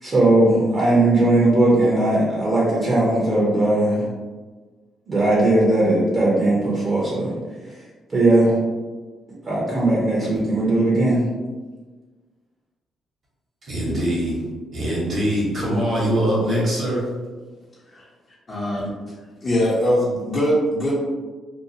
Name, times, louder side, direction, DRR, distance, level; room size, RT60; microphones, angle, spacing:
voice 1, 0.0-4.1 5.1-7.3 8.1-8.6 9.4-11.3, right 2 dB, 35° right, -6 dB, 0.8 m, -18 dB
voice 2, 13.6-14.4 14.7-17.0, equal, 50° right, -5 dB, 1.1 m, -22 dB
voice 3, 18.5-18.9 19.4-20.9, equal, 35° left, -8 dB, 0.7 m, -21 dB
2.7 x 2.2 x 2.7 m, 1.3 s
cardioid pair, 90°, 0 cm